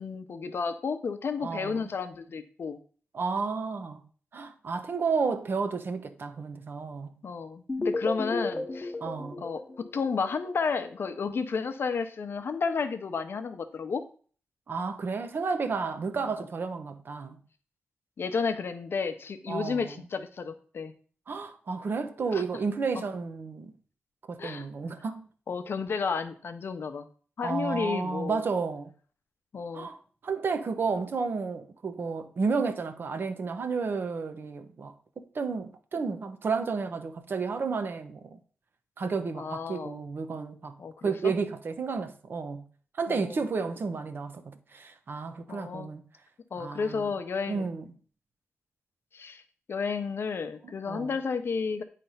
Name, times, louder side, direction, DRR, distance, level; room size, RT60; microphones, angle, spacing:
voice 1, 0.0-2.8 7.2-8.9 9.4-9.6 9.9-14.0 16.2-16.3 18.2-20.9 22.3-22.4 23.0-23.1 24.4-24.7 25.5-27.1 27.4-28.4 29.5-29.9 39.4-40.0 40.8-41.3 43.1-43.4 45.5-45.9 46.5-47.7 49.1-49.4 49.7-51.8, left 5 dB, 60° left, 0.7 m, -32 dB
voice 2, 1.4-1.9 3.1-4.0 4.3-7.1 9.0-9.4 14.7-17.4 19.5-20.0 21.3-23.7 24.3-25.3 27.4-28.9 29.7-30.0 30.2-38.4 39.0-40.8 41.0-42.6 43.0-46.1 46.5-47.1 47.5-47.9 50.6-51.1, right 4 dB, 55° right, 0.8 m, -32 dB
sound 1, 7.7-10.6, left 2 dB, 25° left, 0.9 m, -34 dB
9.1 x 3.3 x 5.6 m
wide cardioid pair, 125°, 4 cm